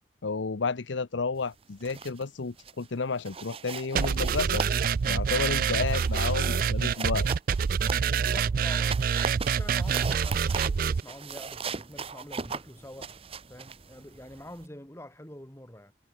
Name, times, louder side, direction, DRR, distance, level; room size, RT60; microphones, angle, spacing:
voice 1, 0.2-4.6 5.1-7.3, left 4 dB, 80° left, 0.7 m, -31 dB
sound 1, 1.6-2.3 2.6-2.9 3.3-8.4 8.8-14.7, right 5 dB, 30° right, 0.7 m, -39 dB
sound 2, 3.9-11.0, right 6 dB, 50° right, 0.4 m, -26 dB
voice 2, 8.1-9.1 9.4-13.1 13.5-15.9, left 1 dB, 15° left, 2.5 m, -46 dB
head